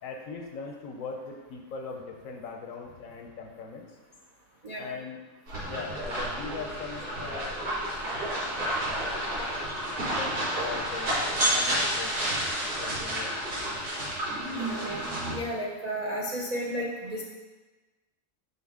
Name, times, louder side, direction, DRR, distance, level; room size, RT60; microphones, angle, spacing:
voice 1, 0.0-4.0 4.8-5.2 5.7-7.6 8.7-9.2 10.1-11.2 11.5-12.1 12.8-13.4, left 4 dB, 65° left, 2 dB, 1.0 m, -40 dB
sound 1, 5.5-15.3, right 1 dB, 85° right, 2.3 m, -30 dB
voice 2, 14.6-15.0 15.3-17.2, equal, 40° right, -4 dB, 0.5 m, -33 dB
6.1 x 5.5 x 3.6 m, 1.2 s
omnidirectional pair, 1.7 m